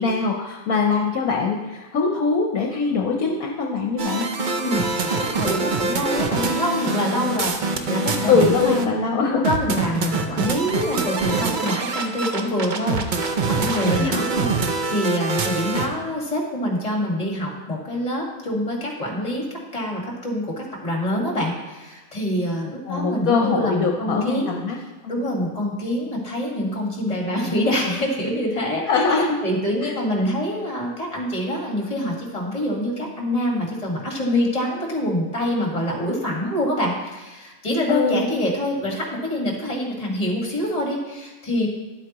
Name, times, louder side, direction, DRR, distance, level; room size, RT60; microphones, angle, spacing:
voice 1, 0.0-4.3 8.3-9.5 14.0-14.2 22.9-24.8 25.0-25.2 28.9-29.4 29.8-29.9 37.9-38.2, left 4 dB, 70° left, 1 dB, 1.1 m, -22 dB
sound 1, 4.0-8.8 9.4-15.9, right 3 dB, 55° right, 0.5 m, -24 dB
voice 2, 4.6-9.0 9.4-19.4 19.7-24.6 25.1-41.7, left 1 dB, 25° left, -1 dB, 1.7 m, -25 dB
10.5 x 8.1 x 3.0 m, 1.2 s
omnidirectional pair, 1.6 m